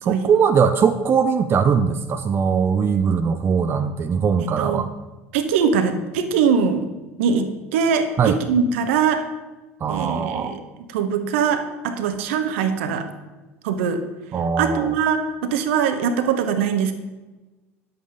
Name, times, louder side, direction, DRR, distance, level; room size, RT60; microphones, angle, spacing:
voice 1, 0.0-4.9 8.2-8.4 9.8-10.5 14.3-14.9, right 6 dB, 30° right, 8 dB, 0.6 m, -20 dB
voice 2, 4.4-4.8 5.3-6.9 7.2-9.2 9.9-10.6 10.9-13.1 13.6-14.0 14.6-16.9, right 6 dB, 65° right, 8 dB, 1.0 m, -22 dB
10.5 x 8.2 x 5.1 m, 1.2 s
figure-of-eight pair, 65°, 7 cm